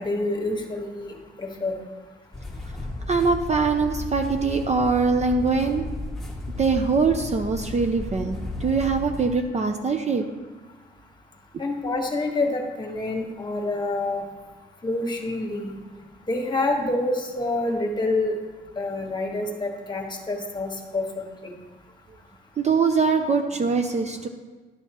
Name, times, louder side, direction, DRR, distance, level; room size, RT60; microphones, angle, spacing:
voice 1, 0.0-1.8 11.6-14.2 14.8-15.8 16.3-18.3 18.8-21.1 21.4-21.5, left 2 dB, 20° left, 1 dB, 1.5 m, -27 dB
sound 1, 2.3-9.3, left 2 dB, ahead, 1.6 m, -34 dB
voice 2, 3.1-5.9 6.6-10.2 22.6-24.3, right 4 dB, 35° right, 5 dB, 0.6 m, -23 dB
11.5 x 6.3 x 3.0 m, 1.3 s
cardioid pair, 90°, 20 cm